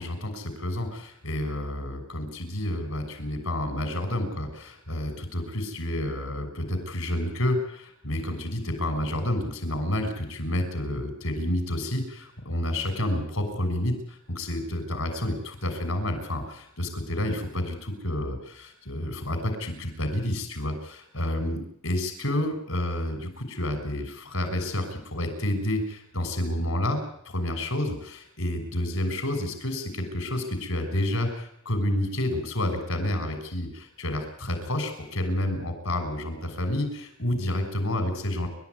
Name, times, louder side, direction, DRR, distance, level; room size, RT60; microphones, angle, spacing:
voice 1, 0.0-38.5, left 1 dB, 75° left, 7 dB, 6.3 m, -29 dB
29.0 x 13.5 x 9.6 m, 0.71 s
head